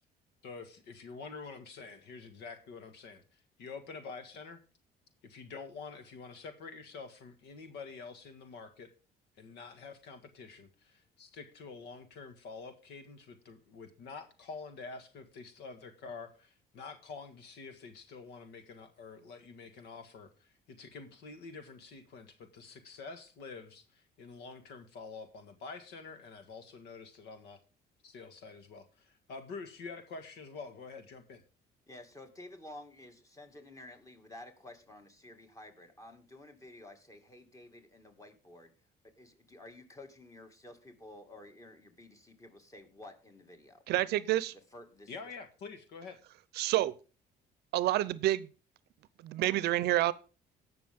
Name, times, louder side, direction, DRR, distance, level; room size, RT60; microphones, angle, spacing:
voice 1, 0.4-4.6 5.2-8.9 9.4-27.6 28.0-31.4 45.1-46.2, left 4 dB, 80° left, 1.7 m, -47 dB
voice 2, 31.9-38.7 39.0-43.8 44.7-45.1, left 1 dB, 20° left, 2.1 m, -52 dB
voice 3, 43.9-44.5 46.6-46.9 47.7-48.5 49.2-50.1, right 15 dB, 75° right, 0.6 m, -28 dB
17.5 x 6.0 x 3.6 m
cardioid pair, 110°, 17 cm